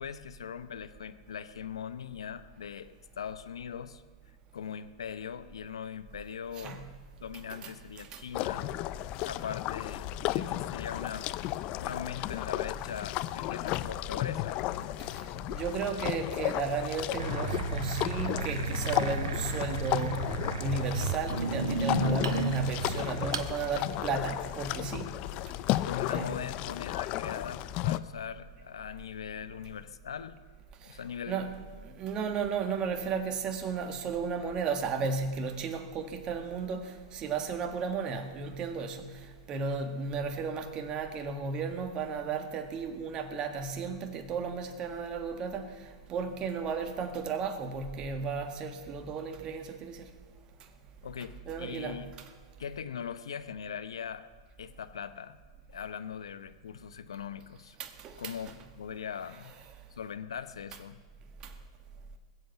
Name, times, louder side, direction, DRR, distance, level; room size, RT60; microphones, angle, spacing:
voice 1, 0.0-4.0 4.5-6.9 7.2-8.7 9.2-11.3 11.7-14.7 25.8-30.4 30.8-31.6 51.0-52.1 52.6-54.3 54.6-55.4 55.7-57.8 58.2-59.6 59.9-61.0, left 8 dB, 85° left, 0.8 m, -40 dB
voice 2, 7.5-8.2 15.0-25.1 25.4-25.8 26.1-26.3 30.8-31.0 31.3-31.6 31.8-50.1 50.6-50.7 51.5-52.3 57.8-58.4 61.4-61.5, right 5 dB, 30° right, 1.7 m, -34 dB
sound 1, 8.3-28.0, left 15 dB, 40° left, 0.5 m, -34 dB
sound 2, 17.2-23.5, right 4 dB, 75° right, 1.2 m, -33 dB
20.5 x 7.9 x 6.9 m
hypercardioid pair, 120°, 3 cm